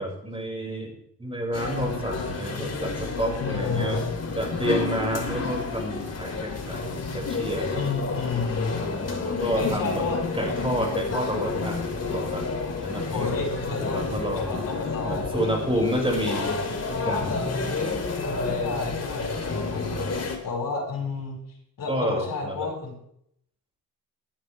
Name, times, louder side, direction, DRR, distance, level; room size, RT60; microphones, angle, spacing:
voice 1, 0.0-4.0 4.4-7.8 8.8-10.0 10.3-12.5 12.8-13.3 13.8-14.6 15.0-16.6 16.9-17.4 19.5-20.0 21.9-22.7, equal, 15° right, 0 dB, 5.6 m, -30 dB
sound 1, 1.5-20.4, left 4 dB, 40° left, 3.2 m, -30 dB
voice 2, 3.4-4.1 7.7-8.8 9.6-10.2 13.1-16.2 18.0-21.4 21.8-23.0, left 4 dB, 60° left, 0 dB, 6.1 m, -31 dB
17.5 x 13.5 x 3.4 m, 0.71 s
cardioid pair, 75°, 38 cm